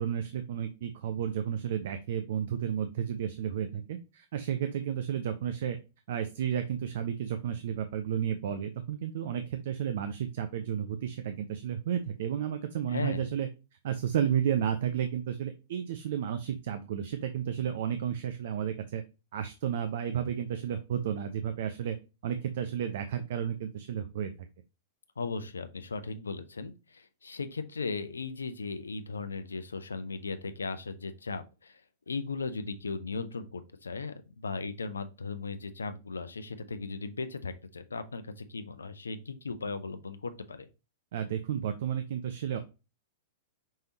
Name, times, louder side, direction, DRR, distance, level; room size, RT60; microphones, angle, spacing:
voice 1, 0.0-5.8 6.1-13.5 13.8-19.0 19.3-22.0 22.2-24.3 41.1-42.6, right 9 dB, 55° right, 0.5 m, -32 dB
voice 2, 12.9-13.3 25.2-31.8 32.1-40.7, left 4 dB, 75° left, 0.6 m, -37 dB
5.4 x 3.4 x 2.8 m
figure-of-eight pair, 100°, 0 cm